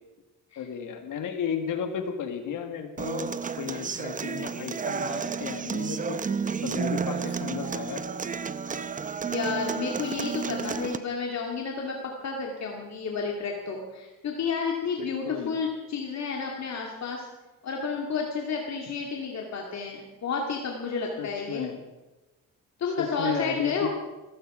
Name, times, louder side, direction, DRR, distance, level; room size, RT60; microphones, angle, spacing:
voice 1, 0.6-3.3 3.6-6.2 6.6-8.0 15.0-15.5 21.2-21.8 23.0-23.9, left 7 dB, 70° left, 6 dB, 1.9 m, -34 dB
Human voice / Acoustic guitar, 3.0-11.0, right 6 dB, 25° right, 0.7 m, -31 dB
voice 2, 5.0-5.4 7.1-7.4 9.3-17.3 17.6-21.7 22.8-23.9, left 5 dB, 55° left, 0 dB, 2.4 m, -31 dB
16.5 x 15.5 x 4.9 m, 1.1 s
cardioid pair, 110°, 33 cm